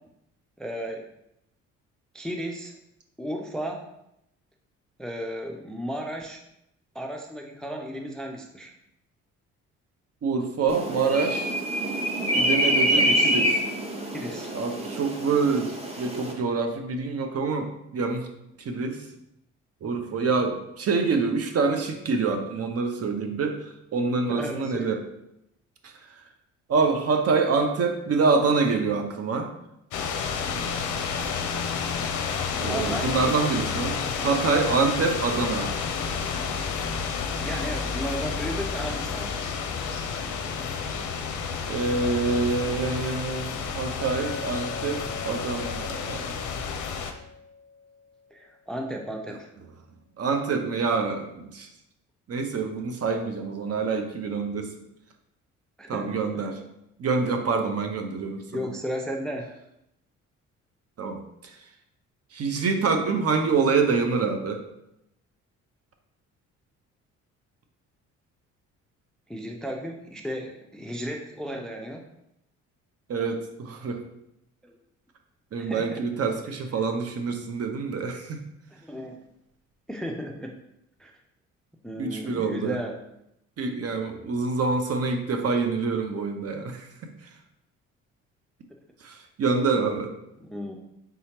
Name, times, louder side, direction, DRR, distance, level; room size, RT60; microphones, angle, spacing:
voice 1, 0.6-1.1 2.1-2.7 3.2-3.9 5.0-6.4 6.9-8.7 12.9-13.3 14.1-14.5 24.3-25.0 32.7-33.2 37.4-39.4 48.3-49.5 55.8-56.2 58.5-59.5 69.3-72.1 74.6-74.7 75.6-76.0 78.8-79.2 79.9-80.5 81.0-81.1 81.8-83.0 90.4-90.8, equal, ahead, 2 dB, 0.5 m, -34 dB
voice 2, 10.2-11.5 12.4-13.5 14.5-18.3 18.6-19.0 19.8-23.6 23.9-25.0 25.8-25.9 26.7-29.5 32.6-35.7 41.7-46.3 50.2-51.7 52.3-54.7 55.9-56.6 57.0-58.7 61.0-61.5 62.3-64.6 73.1-74.0 75.5-78.4 82.0-82.8 83.6-87.1 89.0-90.1, right 4 dB, 40° right, 4 dB, 0.7 m, -26 dB
sound 1, 10.7-16.3, equal, 15° right, 1.0 m, -26 dB
sound 2, 29.9-47.1, left 6 dB, 50° left, 0.6 m, -30 dB
Chink clink, 44.0-48.2, left 3 dB, 35° left, 1.0 m, -41 dB
4.2 x 3.7 x 2.8 m, 0.82 s
hypercardioid pair, 50°, 38 cm